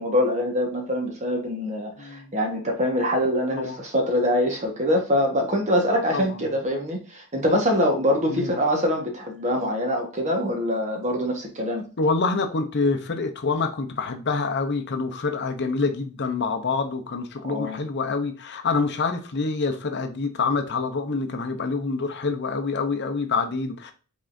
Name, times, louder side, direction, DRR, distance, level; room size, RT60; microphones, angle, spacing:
voice 1, 0.0-11.9 17.4-17.8, equal, 30° right, 1.2 m, -24 dB
voice 2, 2.0-2.3 3.5-3.8 6.1-6.4 8.3-8.5 12.0-23.9, left 4 dB, 50° left, 0.7 m, -26 dB
5.4 x 3.7 x 2.6 m
head